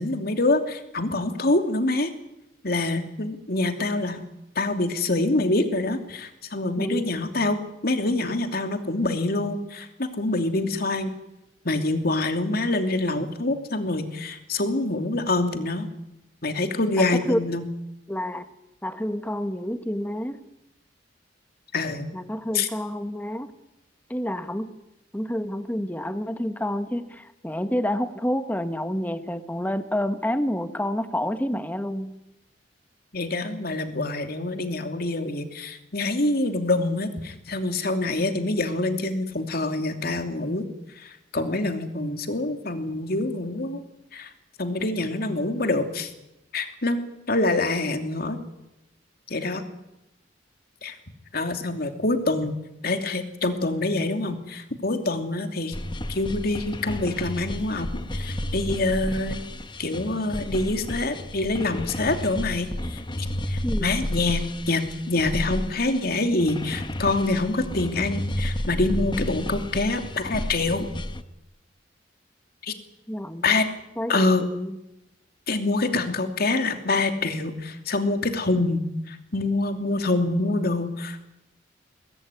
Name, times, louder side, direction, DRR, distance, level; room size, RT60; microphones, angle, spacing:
voice 1, 0.0-2.1 2.6-4.2 4.5-7.6 7.8-11.1 11.6-15.9 16.4-17.6 21.7-22.1 22.5-22.7 33.1-40.6 40.9-43.8 44.1-44.3 44.6-46.1 46.5-48.4 49.3-49.6 50.8-51.0 51.3-52.6 52.8-55.7 56.1-59.4 59.8-70.9 72.6-72.7 73.4-73.7 74.1-74.4 75.5-81.2, left 2 dB, 55° left, 6 dB, 2.9 m, -26 dB
voice 2, 6.8-7.1 17.0-17.4 18.1-18.5 18.8-20.4 22.1-23.5 24.1-24.7 25.1-32.1 63.6-63.9 73.1-73.5 74.0-74.8, equal, 10° left, 9 dB, 1.5 m, -28 dB
sound 1, 55.7-71.2, left 1 dB, 25° left, 1.2 m, -32 dB
23.0 x 20.0 x 9.8 m, 0.89 s
head